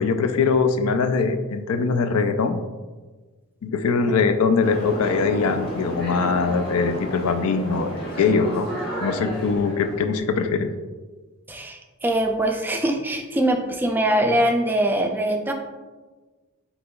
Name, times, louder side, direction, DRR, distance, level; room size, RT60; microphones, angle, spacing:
voice 1, 0.0-2.6 3.6-8.7 9.0-10.7, left 5 dB, 90° left, 8 dB, 0.4 m, -22 dB
sound 1, 4.6-10.2, equal, 50° left, 1.5 m, -32 dB
voice 2, 11.5-15.5, right 1 dB, 10° right, 3 dB, 0.3 m, -22 dB
7.8 x 2.9 x 2.3 m, 1.3 s
head